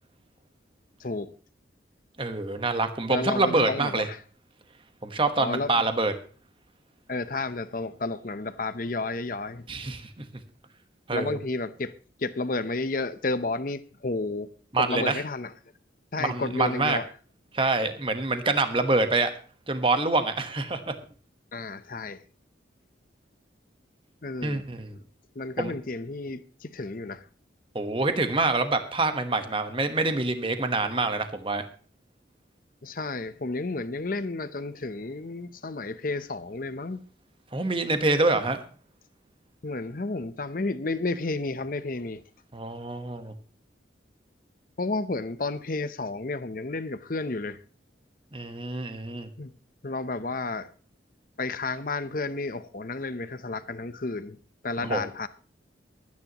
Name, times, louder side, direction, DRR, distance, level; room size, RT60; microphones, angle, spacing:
voice 1, 1.0-1.3 3.1-4.2 5.4-5.8 7.1-9.7 11.1-14.5 14.8-15.5 16.1-17.0 21.5-22.2 24.2-24.6 25.3-27.2 32.8-37.0 39.6-42.2 44.8-47.6 49.4-49.5 49.8-50.7 51.4-54.4 54.6-55.3, left 3 dB, 45° left, 0.8 m, -31 dB
voice 2, 2.2-4.1 5.0-6.1 9.7-10.2 11.1-11.4 14.7-15.2 16.2-17.0 17.5-19.3 19.7-20.9 24.4-25.0 25.6-25.7 27.7-31.7 37.5-38.6 42.5-43.3 48.3-49.3 54.8-55.1, right 3 dB, 30° right, 1.2 m, -26 dB
23.5 x 9.6 x 3.0 m
head